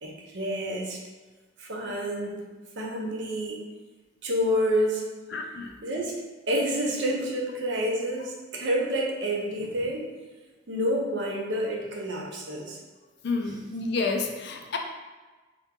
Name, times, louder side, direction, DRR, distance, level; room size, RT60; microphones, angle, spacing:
voice 1, 0.0-1.0 1.6-2.4 2.8-3.6 4.2-5.0 5.8-6.2 6.5-10.1 10.7-12.8 13.5-13.6, equal, 60° right, -1 dB, 0.7 m, -28 dB
voice 2, 5.3-5.7 13.2-14.8, left 3 dB, 55° left, 3 dB, 0.4 m, -29 dB
3.5 x 2.9 x 3.6 m, 1.3 s
head